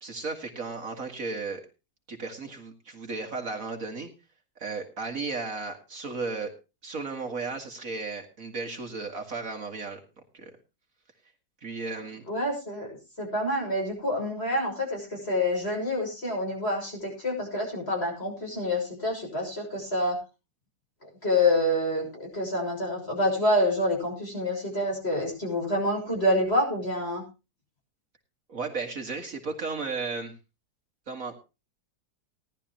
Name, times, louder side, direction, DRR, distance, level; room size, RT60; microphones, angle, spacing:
voice 1, 0.0-1.6 2.1-4.1 4.6-6.5 6.8-10.0 10.3-10.5 11.6-12.2 28.5-30.3 31.1-31.4, right 4 dB, 55° right, 4 dB, 2.1 m, -34 dB
voice 2, 12.3-20.2 21.0-27.2, left 1 dB, 35° left, 0 dB, 6.8 m, -27 dB
18.0 x 11.5 x 3.0 m, 0.29 s
omnidirectional pair, 1.8 m